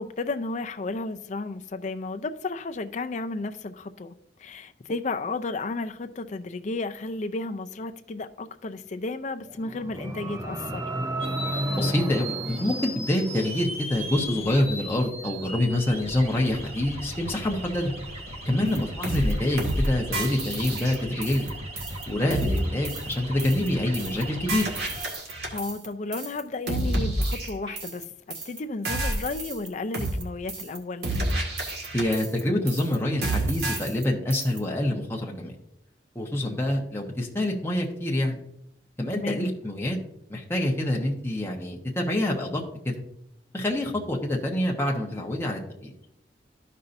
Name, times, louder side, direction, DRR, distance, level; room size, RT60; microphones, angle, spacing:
voice 1, 0.0-10.8 18.6-18.9 25.5-31.1 39.1-39.5, left 3 dB, 45° left, 0.5 m, -33 dB
sound 1, 9.5-13.7, right 1 dB, 20° right, 0.5 m, -32 dB
sound 2, 11.2-25.1, right 1 dB, 35° right, 1.4 m, -37 dB
voice 2, 11.8-17.9 18.5-21.5 22.1-24.7 31.9-35.5 36.1-38.4 39.0-40.0 40.3-43.0 43.5-45.9, left 1 dB, 15° left, 1.1 m, -26 dB
sound 3, 18.7-18.8 19.0-19.3 19.6-19.9 20.1-21.5 21.8-22.0 22.3-22.6 22.8-23.1 23.4-23.7 23.9-24.2 24.5-25.9 26.1-26.4 26.7-28.0 28.3-28.6 28.8-29.7 29.9-30.2 30.5-30.8 31.0-32.4 32.7-32.9 33.2-34.0 34.3-34.6, right 1 dB, 65° right, 1.7 m, -29 dB
13.0 x 5.5 x 2.6 m
head